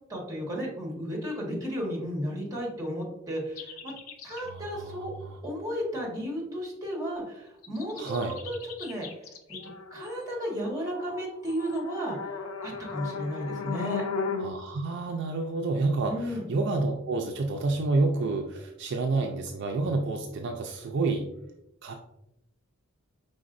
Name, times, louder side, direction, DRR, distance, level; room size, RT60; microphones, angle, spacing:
voice 1, 0.1-3.9 4.2-5.1 5.4-8.2 8.4-9.1 9.5-9.6 9.9-14.0 16.0-16.4, equal, 15° right, -2 dB, 1.4 m, -33 dB
sound 1, 3.6-4.5 7.6-14.5, left 5 dB, 90° left, 0.6 m, -36 dB
voice 2, 4.3-5.4 8.0-8.3 14.3-21.3 21.8-21.9, right 3 dB, 55° right, 3 dB, 0.4 m, -29 dB
5.1 x 3.8 x 2.5 m, 0.87 s
head